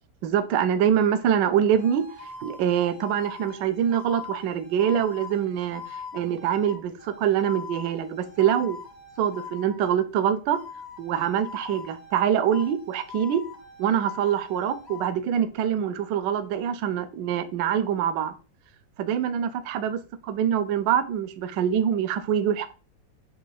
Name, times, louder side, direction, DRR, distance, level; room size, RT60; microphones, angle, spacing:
voice 1, 0.2-2.1 2.4-8.8 9.2-10.6 11.0-13.4 13.8-18.3 19.0-22.7, right 9 dB, 75° right, 1.2 m, -24 dB
sound 1, 1.7-10.0 10.5-12.2 12.5-15.1, left 5 dB, 85° left, 0.3 m, -42 dB
4.7 x 2.8 x 3.9 m
omnidirectional pair, 2.0 m